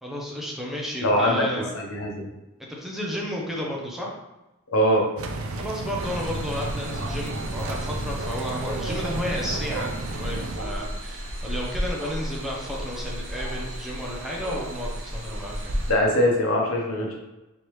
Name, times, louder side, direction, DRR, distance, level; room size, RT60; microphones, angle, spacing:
voice 1, 0.0-1.7 2.6-4.1 5.6-15.7, equal, ahead, -3 dB, 0.7 m, -32 dB
voice 2, 1.0-1.4 1.7-2.3 4.7-5.1 15.9-17.1, equal, 85° left, -1 dB, 1.0 m, -22 dB
sound 1, 5.2-10.6, right 2 dB, 80° right, 0.5 m, -32 dB
sound 2, 6.0-15.9, equal, 60° right, 0.9 m, -33 dB
4.4 x 3.3 x 3.1 m, 1.0 s
head